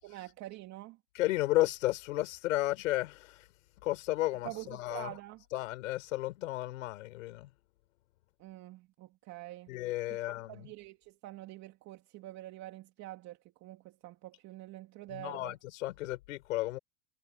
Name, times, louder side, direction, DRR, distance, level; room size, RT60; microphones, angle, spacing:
voice 1, 0.0-1.0 4.4-5.4 8.4-9.7 10.3-15.5, right 17 dB, 45° right, 2.7 m, -46 dB
voice 2, 1.1-3.5 3.8-5.2 5.5-7.5 9.7-10.7 15.1-16.8, left 17 dB, 80° left, 7.0 m, -33 dB
supercardioid pair, 135°, 39 cm